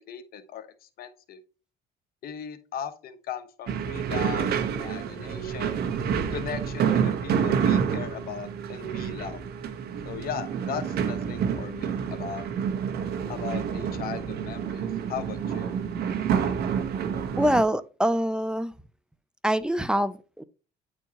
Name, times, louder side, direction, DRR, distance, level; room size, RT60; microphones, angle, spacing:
voice 1, 0.0-1.4 2.2-5.8 6.3-9.4 10.0-12.5 13.3-15.7, left 8 dB, 65° left, 1.1 m, -38 dB
sound 1, 3.7-17.6, right 7 dB, 70° right, 1.2 m, -28 dB
voice 2, 17.4-18.7 19.4-20.4, equal, 5° right, 0.5 m, -24 dB
9.4 x 4.5 x 3.0 m
cardioid pair, 110°, 17 cm